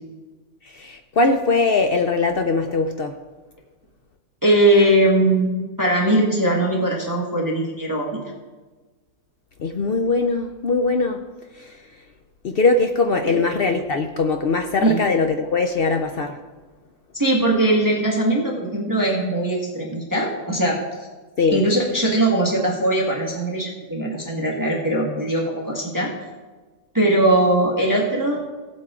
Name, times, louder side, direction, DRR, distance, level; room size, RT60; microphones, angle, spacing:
voice 1, 0.6-3.2 9.6-11.2 11.5-11.8 12.4-16.4 21.4-21.7, left 3 dB, 65° left, 5 dB, 0.5 m, -21 dB
voice 2, 4.4-8.1 13.2-13.4 14.8-15.0 17.2-20.8 21.5-26.1 26.9-28.4, right 1 dB, 10° right, -2 dB, 1.5 m, -20 dB
16.0 x 8.0 x 3.7 m, 1.3 s
omnidirectional pair, 1.7 m